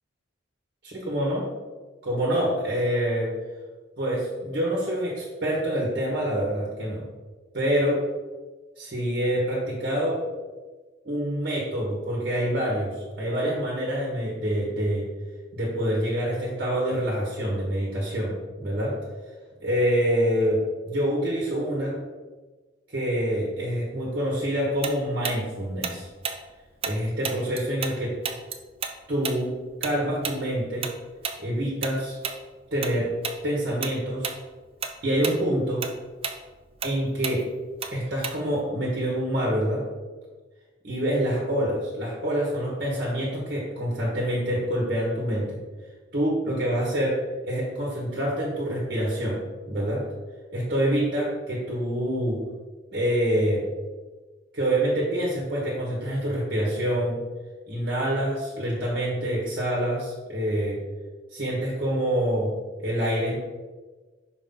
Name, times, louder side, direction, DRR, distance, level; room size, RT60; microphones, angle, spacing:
voice 1, 0.8-1.4 2.0-3.3 4.0-7.0 7.5-8.0 8.8-10.2 11.0-15.0 15.5-18.9 19.6-22.0 22.9-26.1 26.8-28.1 29.1-29.5 29.8-30.9 31.4-32.2 32.7-33.1 33.4-34.3 35.0-35.8 36.8-37.4 37.9-39.8 40.8-45.6 46.1-47.2 47.4-49.4 49.7-50.0 50.5-52.4 52.9-53.6 54.5-57.2 57.7-60.8 61.3-62.5 62.8-63.3, equal, 50° right, -4 dB, 1.3 m, -26 dB
Tick-tock, 24.8-28.0 28.2-33.0 33.2-33.4 33.8-34.4 34.7-38.7, right 6 dB, 30° right, 0.4 m, -33 dB
5.7 x 4.7 x 3.8 m, 1.3 s
head